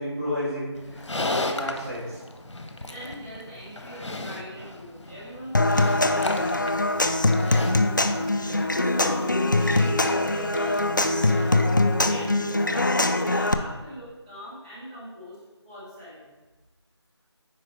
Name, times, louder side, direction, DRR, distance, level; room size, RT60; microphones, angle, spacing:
voice 1, 0.0-2.2, equal, 30° right, -13 dB, 2.3 m, -32 dB
Livestock farm animals working animals, 0.7-12.0, left 2 dB, 85° left, 0.9 m, -36 dB
voice 2, 2.8-6.7 7.2-9.9 10.3-12.3 12.6-15.4 15.6-16.4, equal, 10° right, -11 dB, 1.2 m, -41 dB
Human voice / Acoustic guitar / Percussion, 5.5-13.5, left 2 dB, 45° left, 0.4 m, -22 dB
9.0 x 4.9 x 3.2 m, 1.2 s
figure-of-eight pair, 175°, 15 cm